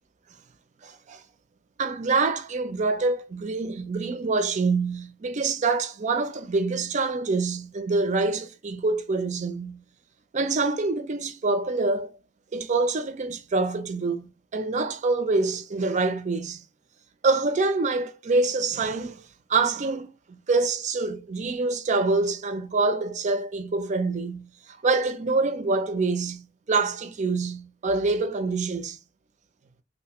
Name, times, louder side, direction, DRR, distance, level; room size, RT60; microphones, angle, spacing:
voice 1, 0.8-1.2 1.8-9.8 10.3-12.1 12.5-16.6 17.2-19.2 19.5-20.1 20.5-24.5 24.8-29.0, right 3 dB, 40° right, 0.5 m, -26 dB
3.3 x 2.6 x 2.9 m
head